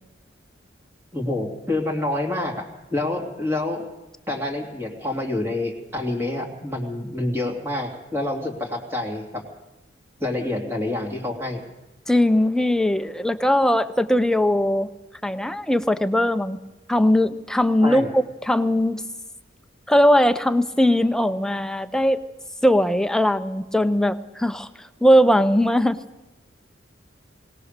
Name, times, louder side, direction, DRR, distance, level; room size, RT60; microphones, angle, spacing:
voice 1, 1.1-2.5 2.9-3.8 4.3-9.4 10.2-11.6 17.8-18.1, left 2 dB, 10° right, 1 dB, 2.9 m, -27 dB
voice 2, 12.1-14.9 15.2-16.6 16.9-19.1 19.9-22.2 22.6-24.7 25.0-26.0, equal, 5° left, 10 dB, 0.7 m, -19 dB
21.0 x 18.5 x 6.7 m, 1.1 s
head